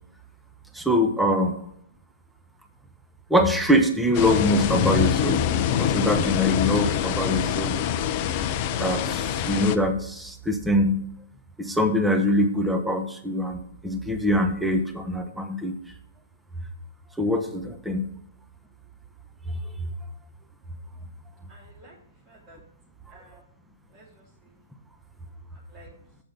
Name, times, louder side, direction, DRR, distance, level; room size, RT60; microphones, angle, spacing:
voice 1, 0.7-1.6 3.3-5.4 5.8-7.8 8.8-11.1 11.6-15.8 17.2-18.1, left 1 dB, 5° right, 5 dB, 0.8 m, -23 dB
sound 1, 4.1-9.8, left 9 dB, 40° left, 0.5 m, -25 dB
voice 2, 21.5-21.9 22.3-22.6 23.1-23.4 23.9-24.6 25.7-25.9, equal, 35° right, -4 dB, 2.7 m, -52 dB
7.3 x 5.2 x 5.1 m, 0.70 s
hypercardioid pair, 125°, 0 cm